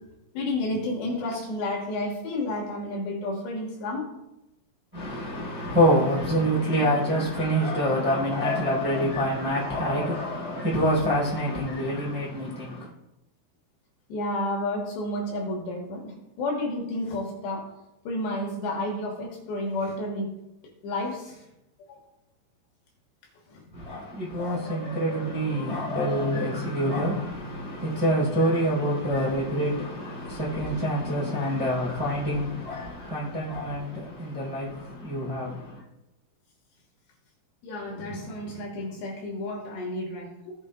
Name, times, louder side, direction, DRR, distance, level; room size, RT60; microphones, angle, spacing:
voice 1, 0.3-4.1 14.1-17.6 18.0-20.3 20.8-21.4 21.9-22.0 23.5-23.6 37.6-40.5, left 1 dB, 70° left, 3.3 m, -31 dB
voice 2, 4.9-12.9 23.7-35.8, equal, 10° right, 2.3 m, -26 dB
16.5 x 8.1 x 2.3 m
omnidirectional pair, 5.5 m